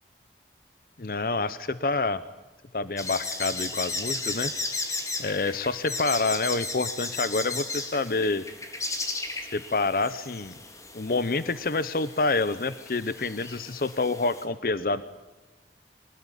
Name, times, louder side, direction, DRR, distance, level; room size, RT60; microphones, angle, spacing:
voice 1, 1.0-2.2 2.7-4.5 5.2-8.4 9.5-10.5 10.9-15.0, left 3 dB, 55° left, 14 dB, 0.7 m, -27 dB
sound 1, 3.0-14.4, left 3 dB, 20° left, 2.3 m, -35 dB
23.5 x 20.0 x 10.0 m, 1.2 s
head